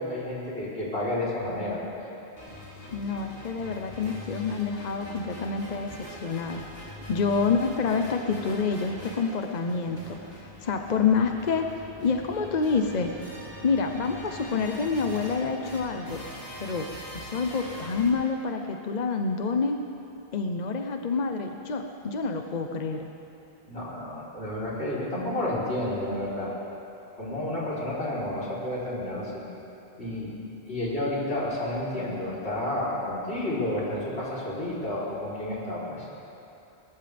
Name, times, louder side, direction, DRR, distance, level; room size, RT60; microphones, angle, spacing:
voice 1, 0.0-1.8 23.7-26.5 27.2-29.4 29.9-30.4 30.7-36.1, left 1 dB, 80° left, -8 dB, 4.2 m, -31 dB
sound 1, 2.4-18.1, equal, 65° left, 4.5 m, -43 dB
voice 2, 2.9-6.6 7.1-13.1 13.6-16.2 16.6-16.9 17.1-19.8 20.3-23.1, left 5 dB, 45° left, 5 dB, 0.9 m, -28 dB
21.0 x 20.0 x 3.5 m, 2.8 s
omnidirectional pair, 1.1 m